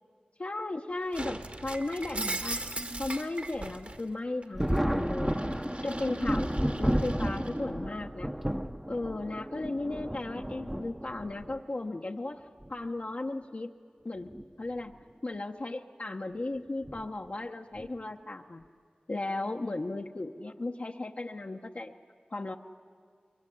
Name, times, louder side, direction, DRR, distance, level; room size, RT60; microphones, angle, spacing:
voice 1, 0.4-2.6 3.0-5.4 5.8-6.5 6.8-8.3 8.9-12.4 12.7-13.7 14.0-14.3 14.6-14.9 15.2-18.6 19.1-21.9 22.3-22.6, left 2 dB, 55° left, 1 dB, 0.9 m, -35 dB
Shatter, 1.1-4.0 4.4-7.6, right 2 dB, 50° right, 1.9 m, -39 dB
Thunder, 4.5-11.6 12.6-12.7 14.2-14.4 14.8-14.9 16.8-17.1 17.8-18.1, equal, 10° right, 0.8 m, -32 dB
24.0 x 23.0 x 10.0 m, 2.2 s
wide cardioid pair, 45°, 3 cm